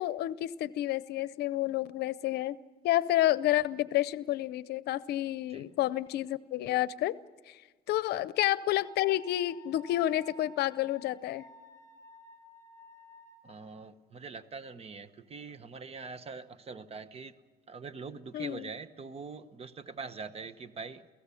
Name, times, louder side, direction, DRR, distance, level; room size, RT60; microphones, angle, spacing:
voice 1, 0.0-2.6 2.8-7.1 7.5-7.6 7.9-11.4 18.3-18.7, left 14 dB, 75° left, 18 dB, 0.7 m, -30 dB
Wind instrument woodwind instrument, 8.7-13.6, left 1 dB, 20° left, 7.9 m, -54 dB
voice 2, 13.4-17.3 17.7-21.1, right 4 dB, 35° right, 13 dB, 1.1 m, -43 dB
29.0 x 17.0 x 7.1 m, 1.3 s
cardioid pair, 110°, 17 cm